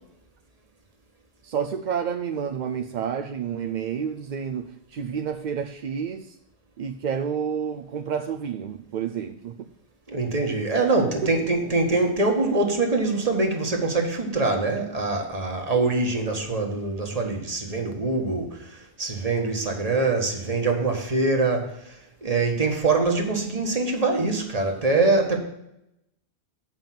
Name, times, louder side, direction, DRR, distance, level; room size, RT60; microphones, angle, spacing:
voice 1, 1.4-6.4 6.8-9.7 11.0-11.5, right 7 dB, 55° right, 0.5 m, -30 dB
voice 2, 10.1-21.9 22.2-25.4, right 3 dB, 35° right, 1.4 m, -24 dB
7.6 x 5.2 x 7.5 m
omnidirectional pair, 1.1 m